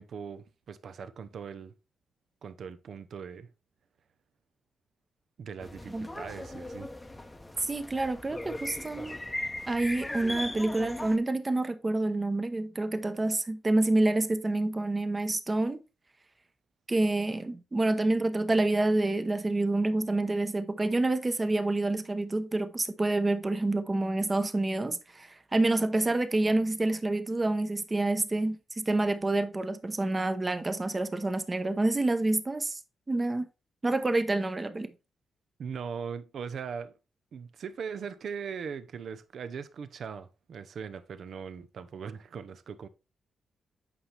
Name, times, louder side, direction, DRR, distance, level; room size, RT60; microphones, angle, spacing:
voice 1, 0.0-1.7 2.4-3.5 5.4-6.9 35.6-36.9 37.3-42.9, right 6 dB, 65° right, 0.8 m, -40 dB
sound 1, 5.6-11.2, left 1 dB, 15° left, 0.8 m, -39 dB
voice 2, 7.7-9.2 9.7-15.8 16.9-32.8 33.1-33.5 33.8-34.9, right 2 dB, 25° right, 0.9 m, -28 dB
8.6 x 5.6 x 3.3 m
cardioid pair, 105°, 0 cm